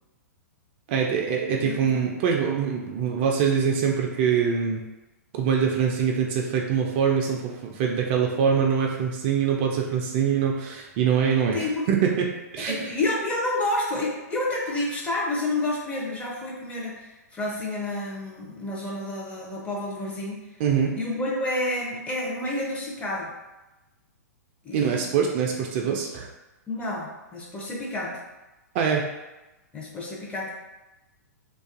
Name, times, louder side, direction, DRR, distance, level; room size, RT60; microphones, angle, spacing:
voice 1, 0.9-4.8 5.3-12.3 12.5-12.9 20.6-20.9 24.7-26.3 28.7-29.0, right 7 dB, 40° right, 0 dB, 0.3 m, -24 dB
voice 2, 1.6-1.9 11.5-11.8 12.6-17.0 17.3-20.4 20.9-23.3 24.6-25.1 25.4-25.5 26.7-28.2 29.7-30.5, left 2 dB, 15° left, -4 dB, 0.5 m, -29 dB
2.4 x 2.3 x 2.4 m, 1.0 s
figure-of-eight pair, 110°, 9 cm